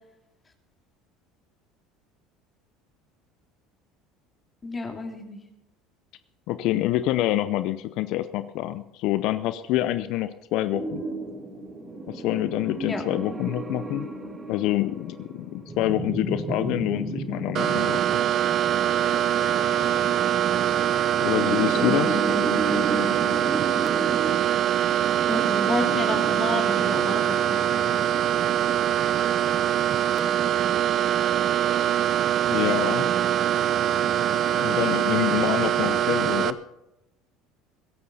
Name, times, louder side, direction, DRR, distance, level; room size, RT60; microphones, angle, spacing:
voice 1, 4.6-5.4 12.8-13.0 25.3-27.6, left 3 dB, 25° left, 3 dB, 2.4 m, -30 dB
voice 2, 6.5-11.0 12.1-14.1 14.5-18.3 21.2-22.2 32.5-33.1 34.5-36.6, left 14 dB, 65° left, 13 dB, 0.6 m, -26 dB
sound 1, 10.7-26.4, right 1 dB, 25° right, 2.8 m, -33 dB
sound 2, 17.5-36.5, right 11 dB, 50° right, 0.7 m, -23 dB
21.5 x 11.0 x 4.1 m, 0.89 s
hypercardioid pair, 85°, 0 cm